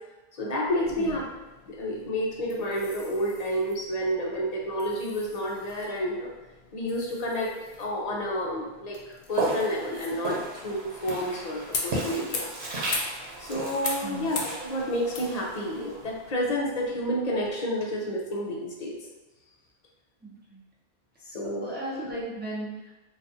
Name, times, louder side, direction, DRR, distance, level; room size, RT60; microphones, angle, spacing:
voice 1, 0.4-1.2 1.7-6.3 6.7-12.5 13.4-19.0 21.3-21.7, equal, 45° left, -2 dB, 0.6 m, -30 dB
sound 1, 0.7-17.5, left 4 dB, 80° left, 0.8 m, -41 dB
Walk footsteps, 9.3-16.4, right 2 dB, 85° right, 1.0 m, -34 dB
voice 2, 14.0-14.3 20.2-20.6 21.6-22.9, right 1 dB, 10° right, -6 dB, 0.6 m, -36 dB
3.9 x 2.4 x 2.7 m, 1.1 s
omnidirectional pair, 1.1 m